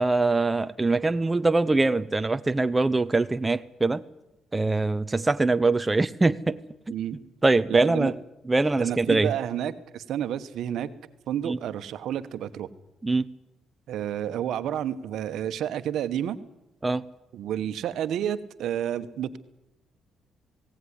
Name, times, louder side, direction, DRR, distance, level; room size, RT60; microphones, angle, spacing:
voice 1, 0.0-4.0 4.5-6.6 7.4-8.2 8.5-9.3 11.4-11.6 13.0-13.3 16.8-17.0, right 3 dB, 20° right, 12 dB, 0.7 m, -23 dB
voice 2, 6.9-7.2 7.7-8.1 8.8-10.9 11.3-12.7 13.9-16.4 17.3-19.4, right 10 dB, 75° right, 11 dB, 1.2 m, -30 dB
18.5 x 17.5 x 9.9 m, 0.90 s
cardioid pair, 90°, 0 cm